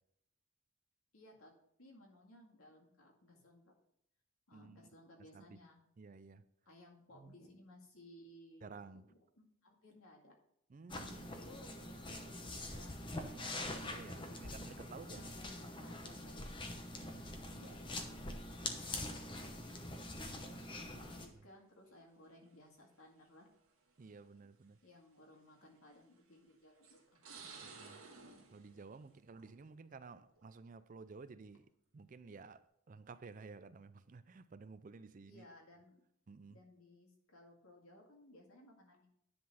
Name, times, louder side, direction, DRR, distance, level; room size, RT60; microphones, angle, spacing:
voice 1, 1.1-1.5 1.8-3.7 4.5-5.8 6.7-10.3 11.2-13.3 14.2-16.5 17.5-18.2 20.5-23.5 24.8-27.0 35.3-36.0 36.5-39.1, left 1 dB, 80° left, 2.0 m, -60 dB
voice 2, 6.0-6.4 7.1-7.4 8.6-9.0 10.7-11.4 13.3-15.2 17.0-17.7 18.8-19.0 20.3-21.5 24.0-24.8 27.6-28.0 28.5-31.7 31.9-32.6 32.9-35.5 36.3-36.6, right 4 dB, 35° right, 0.4 m, -54 dB
sound 1, 10.9-21.3, left 2 dB, 20° left, 0.8 m, -45 dB
sound 2, 21.0-21.4 22.4-22.5 23.6-23.7 24.2-24.3 25.7-26.1 26.8-29.7 30.1-30.5, right 4 dB, 75° right, 1.9 m, -55 dB
10.0 x 3.9 x 5.6 m
head